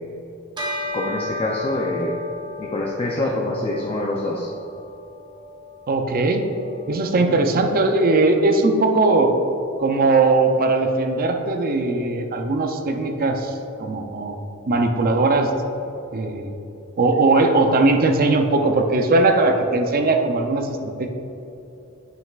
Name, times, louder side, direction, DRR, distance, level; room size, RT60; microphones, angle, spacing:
Bell, 0.6-10.2, left 3 dB, 20° right, 1.0 m, -36 dB
voice 1, 0.9-2.2 2.6-4.5 7.0-7.4, left 1 dB, 25° left, -2 dB, 0.5 m, -26 dB
voice 2, 5.9-6.4 6.9-9.3 9.8-14.4 14.7-15.5 16.1-16.5 17.0-21.1, right 3 dB, 45° right, 5 dB, 0.5 m, -19 dB
9.1 x 5.6 x 2.4 m, 2.9 s
head